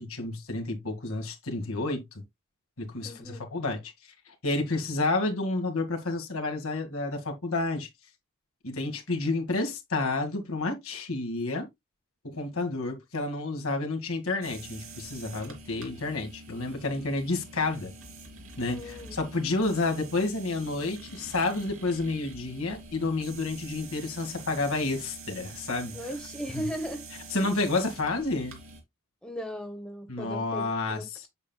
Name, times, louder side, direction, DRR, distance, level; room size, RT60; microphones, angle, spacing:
voice 1, 0.0-2.0 2.8-3.9 4.4-7.9 8.6-11.7 12.2-17.9 18.6-26.0 26.5-26.7 27.3-28.6 30.1-31.2, left 2 dB, 70° left, 2.0 m, -30 dB
voice 2, 3.0-3.4 18.7-19.2 25.9-27.0 27.3-27.4 29.2-31.3, equal, 5° left, 1.2 m, -37 dB
sound 1, 14.4-28.8, right 3 dB, 65° right, 2.7 m, -46 dB
8.1 x 7.6 x 2.3 m
head